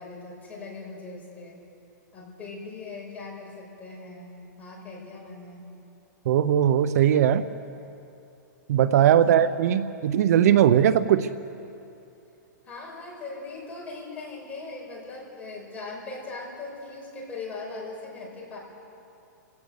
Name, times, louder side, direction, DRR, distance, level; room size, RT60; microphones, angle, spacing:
voice 1, 0.0-1.6 2.1-5.7 9.1-9.4 12.6-18.6, left 3 dB, 15° left, -3 dB, 5.6 m, -40 dB
voice 2, 6.3-7.4 8.7-11.3, right 10 dB, 55° right, 14 dB, 0.7 m, -19 dB
28.0 x 17.0 x 6.7 m, 2.7 s
hypercardioid pair, 150°, 10 cm